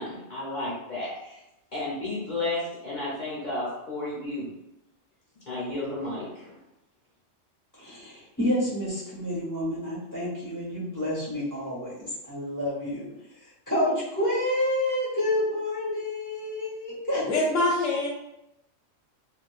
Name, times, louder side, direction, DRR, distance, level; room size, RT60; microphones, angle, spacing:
voice 1, 0.0-1.4 1.7-4.5 5.5-6.6, left 2 dB, 40° left, -7 dB, 1.0 m, -32 dB
voice 2, 7.8-13.1 13.7-17.2, left 1 dB, 15° left, -8 dB, 1.1 m, -29 dB
voice 3, 17.3-18.1, left 2 dB, 75° left, 0 dB, 1.0 m, -24 dB
2.9 x 2.3 x 2.4 m, 0.88 s
omnidirectional pair, 1.3 m